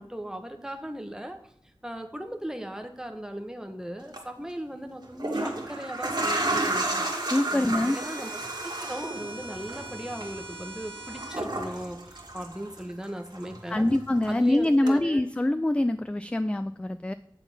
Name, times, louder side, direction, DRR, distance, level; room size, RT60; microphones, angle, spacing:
voice 1, 0.0-1.4 1.8-7.1 7.5-8.4 8.8-13.9 14.3-15.2, right 1 dB, 5° right, 5 dB, 1.1 m, -37 dB
sound 1, 4.0-4.2 5.0-13.1 13.4-14.4 14.9-15.0, right 2 dB, 55° right, 1.8 m, -32 dB
voice 2, 7.3-8.0 13.7-17.1, left 1 dB, 15° left, 11 dB, 0.3 m, -24 dB
sound 2, 7.8-11.4, right 2 dB, 50° left, 3.3 m, -42 dB
9.1 x 4.0 x 7.1 m, 0.74 s
wide cardioid pair, 60°, 9 cm